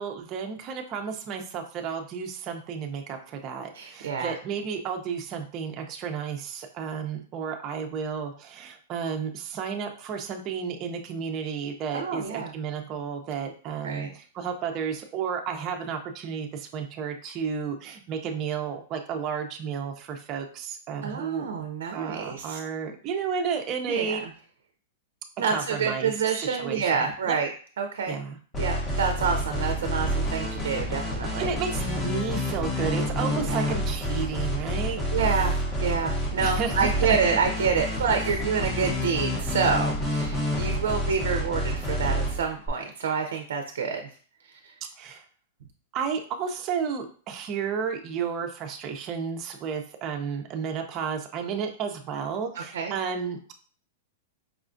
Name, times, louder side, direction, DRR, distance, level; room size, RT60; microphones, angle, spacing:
voice 1, 0.0-21.5 21.9-24.2 25.5-26.1 26.5-26.9 27.3-27.4 28.1-28.4 31.4-35.0 36.4-37.2 45.0-45.2 45.9-53.4, right 6 dB, 30° right, 3 dB, 0.4 m, -32 dB
voice 2, 3.7-4.3 11.9-12.5 13.8-14.1 21.0-22.6 23.9-24.3 25.4-27.5 27.8-28.2 28.6-31.5 33.2-33.6 35.1-44.1 44.5-44.7 52.5-52.9, right 6 dB, 85° right, 5 dB, 0.5 m, -28 dB
sound 1, 28.5-42.7, equal, 15° left, 0.7 m, -28 dB
4.8 x 2.3 x 2.5 m, 0.43 s
supercardioid pair, 155°, 0 cm